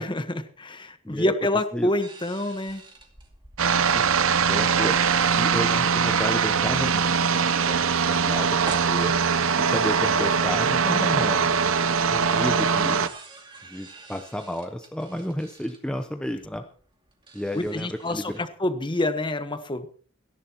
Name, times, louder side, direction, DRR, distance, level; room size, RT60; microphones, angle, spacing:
voice 1, 0.0-2.8 17.5-19.9, left 1 dB, 25° left, 9 dB, 1.2 m, -27 dB
sound 1, 2.0-9.6 9.9-10.0 10.1-10.6 12.0-12.1 12.6-18.4, right 3 dB, 20° right, 2.4 m, -46 dB
sound 2, 3.6-13.1, right 6 dB, 65° right, 0.8 m, -22 dB
voice 2, 4.5-4.9 5.4-9.1 9.5-11.5 12.1-13.1 13.7-16.6 17.3-18.4, equal, 5° left, 5 dB, 0.8 m, -32 dB
30.0 x 11.0 x 3.0 m, 0.43 s
head